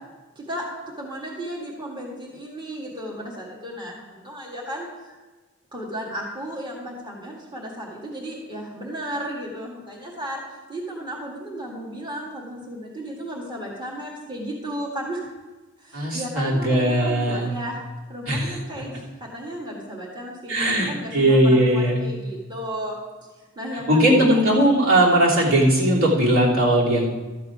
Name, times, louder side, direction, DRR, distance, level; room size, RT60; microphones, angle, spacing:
voice 1, 1.0-5.2 5.7-10.4 10.7-15.2 15.8-17.8 18.1-23.0 23.4-24.4, equal, 20° right, -4 dB, 1.8 m, -34 dB
voice 2, 15.9-17.5 18.3-18.6 20.5-22.0 23.9-27.1, right 1 dB, 65° right, -5 dB, 3.2 m, -19 dB
13.0 x 8.2 x 4.8 m, 1.3 s
head